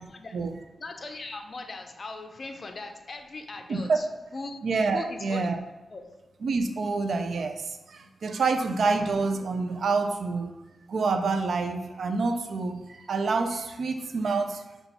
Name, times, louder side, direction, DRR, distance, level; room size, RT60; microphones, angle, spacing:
voice 1, 0.8-4.1 4.3-4.6 4.9-5.5 5.9-6.0, left 3 dB, 50° left, 5 dB, 0.5 m, -39 dB
voice 2, 3.7-4.0 4.6-5.6 6.4-10.6 10.9-14.6, right 4 dB, 70° right, 7 dB, 0.4 m, -27 dB
5.6 x 2.3 x 4.0 m, 1.1 s
cardioid pair, 70°, 0 cm